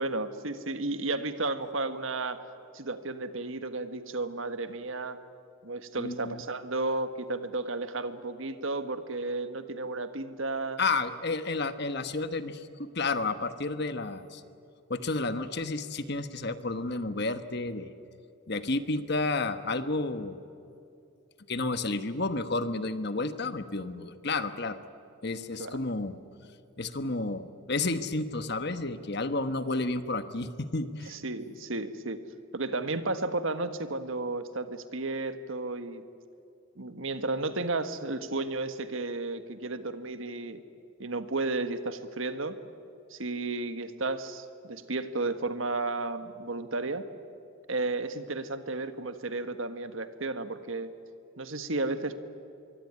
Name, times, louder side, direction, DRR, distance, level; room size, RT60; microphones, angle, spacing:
voice 1, 0.0-2.4 2.7-5.2 5.6-10.8 25.6-25.8 31.1-32.2 32.5-36.0 36.8-40.6 41.0-42.5 43.1-47.0 47.7-50.9 51.4-52.2, right 2 dB, 70° right, 10 dB, 1.6 m, -33 dB
voice 2, 6.0-6.4 10.8-14.4 14.9-17.9 18.5-20.4 21.5-24.8 25.2-26.2 26.8-31.1, left 3 dB, 50° left, 10 dB, 1.3 m, -31 dB
25.0 x 23.5 x 9.7 m, 2.6 s
head